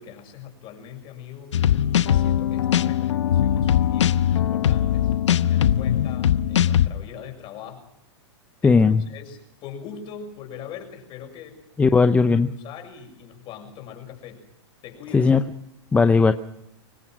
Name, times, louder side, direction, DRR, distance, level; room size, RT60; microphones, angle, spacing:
voice 1, 0.0-7.9 8.6-12.0 12.5-14.4 14.8-15.3, left 7 dB, 35° left, 4 dB, 6.7 m, -41 dB
sound 1, 1.5-6.9, left 10 dB, 85° left, 1.0 m, -20 dB
voice 2, 8.6-9.0 11.8-12.5 15.1-15.4 15.9-16.3, left 4 dB, 10° left, 9 dB, 0.7 m, -17 dB
24.5 x 19.0 x 6.2 m, 0.79 s
hypercardioid pair, 140°, 15 cm